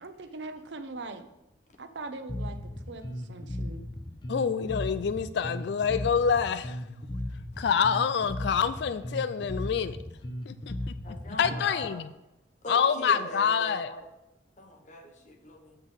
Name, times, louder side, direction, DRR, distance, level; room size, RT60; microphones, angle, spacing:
voice 1, 0.0-1.3 1.8-2.6 2.9-3.0 3.3-3.9, right 3 dB, 70° right, 8 dB, 0.8 m, -40 dB
Bass guitar, 2.3-11.9, left 1 dB, 25° left, 0.9 m, -37 dB
voice 2, 4.3-6.8 7.6-10.0 10.5-10.9 11.3-12.1 12.7-13.9, left 6 dB, 65° left, 13 dB, 0.3 m, -27 dB
voice 3, 11.0-12.1 12.6-14.1 14.6-15.8, left 1 dB, 45° left, 4 dB, 1.2 m, -42 dB
8.1 x 5.8 x 5.2 m, 0.90 s
head